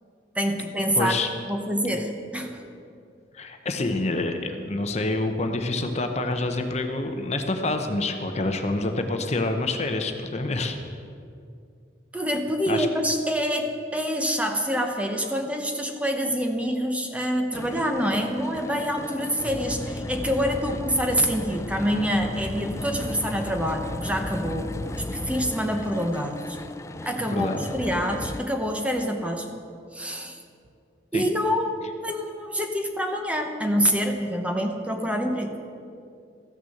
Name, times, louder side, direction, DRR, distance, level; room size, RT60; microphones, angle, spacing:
voice 1, 0.3-1.2 1.5-2.6 12.1-24.7 25.1-26.6 27.0-29.6 29.9-30.4 31.1-35.5, equal, 5° right, 3 dB, 0.8 m, -26 dB
voice 2, 1.0-1.3 3.3-11.0 12.7-12.9 27.3-27.7 31.1-31.3, left 2 dB, 35° left, 6 dB, 0.8 m, -27 dB
sound 1, 17.5-28.4, left 2 dB, 15° left, 0.3 m, -35 dB
14.5 x 6.7 x 7.8 m, 2.4 s
head